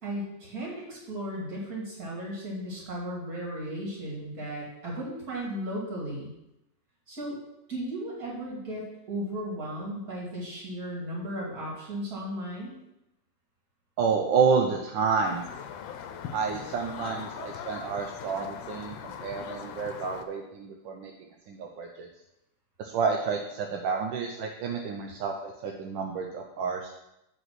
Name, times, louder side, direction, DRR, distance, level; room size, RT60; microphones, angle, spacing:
voice 1, 0.0-6.3 7.1-7.4 7.7-12.8, equal, 50° right, -4 dB, 3.1 m, -35 dB
voice 2, 14.0-15.4 16.3-21.1 21.5-22.1 22.8-26.9, right 5 dB, 80° right, 2 dB, 1.4 m, -29 dB
sound 1, 15.2-20.2, left 7 dB, 90° left, 1.5 m, -40 dB
7.8 x 4.8 x 5.9 m, 0.87 s
omnidirectional pair, 2.0 m